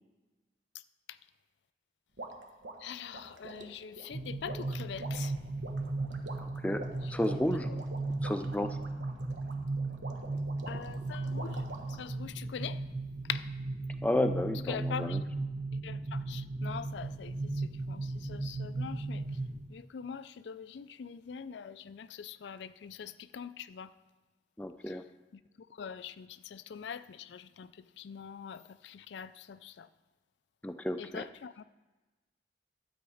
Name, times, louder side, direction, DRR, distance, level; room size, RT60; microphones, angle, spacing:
sound 1, 2.2-12.1, right 2 dB, 75° right, 1.2 m, -47 dB
voice 1, 2.8-5.3 7.7-7.8 10.7-12.8 13.3-13.4 14.7-15.2 15.8-19.2 19.7-23.9 25.8-27.7 28.0-29.9 31.0-31.6, left 7 dB, 75° left, 14 dB, 0.4 m, -43 dB
sound 2, 4.1-19.6, right 2 dB, 35° right, 0.8 m, -36 dB
voice 2, 6.4-6.8 7.1-7.7 8.2-8.8 14.0-15.2 24.6-25.0 30.6-31.2, left 1 dB, 5° left, 7 dB, 0.4 m, -32 dB
12.5 x 8.0 x 4.9 m, 1.2 s
head